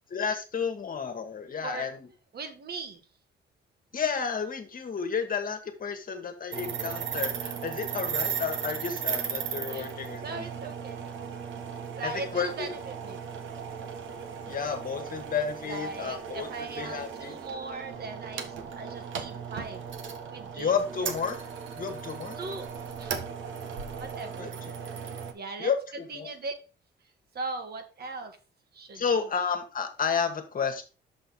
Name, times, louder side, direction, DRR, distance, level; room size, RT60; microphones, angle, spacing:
voice 1, 0.1-2.1 3.9-10.5 12.0-12.7 14.5-17.3 20.5-21.4 21.8-22.4 24.4-24.5 25.6-26.3 28.9-30.8, left 6 dB, 45° left, 6 dB, 1.6 m, -31 dB
voice 2, 1.6-2.0 2.3-3.0 9.7-9.9 10.2-11.1 11.9-13.4 15.6-19.8 20.3-20.7 21.0-21.2 22.4-22.7 23.0-23.2 24.0-24.7 25.3-26.5 27.3-28.4 28.7-29.0, right 3 dB, 55° right, 7 dB, 1.7 m, -39 dB
sound 1, 6.5-25.3, right 7 dB, 75° right, 1.3 m, -36 dB
6.4 x 5.6 x 4.8 m, 0.34 s
cardioid pair, 90°, 20 cm